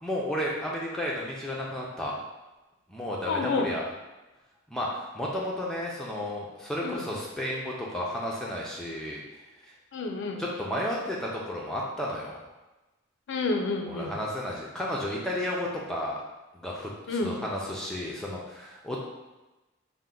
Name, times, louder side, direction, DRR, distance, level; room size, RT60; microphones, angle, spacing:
voice 1, 0.0-2.1 2.9-3.8 4.7-9.2 9.6-9.7 10.4-12.4 13.9-16.2 16.5-19.0, left 1 dB, 5° left, -4 dB, 0.4 m, -32 dB
voice 2, 3.3-3.7 6.8-7.1 9.9-10.4 13.3-14.1 17.1-17.4, left 3 dB, 60° left, 4 dB, 0.5 m, -29 dB
4.3 x 2.1 x 3.7 m, 1.1 s
head